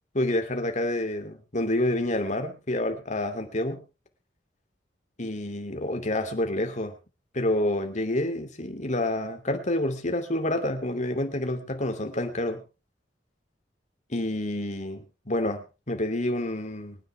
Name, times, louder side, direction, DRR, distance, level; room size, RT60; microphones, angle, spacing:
voice 1, 0.1-3.8 5.2-6.9 7.3-12.6 14.1-17.0, left 1 dB, 40° left, 6 dB, 2.7 m, -28 dB
24.0 x 9.8 x 3.4 m, 0.31 s
head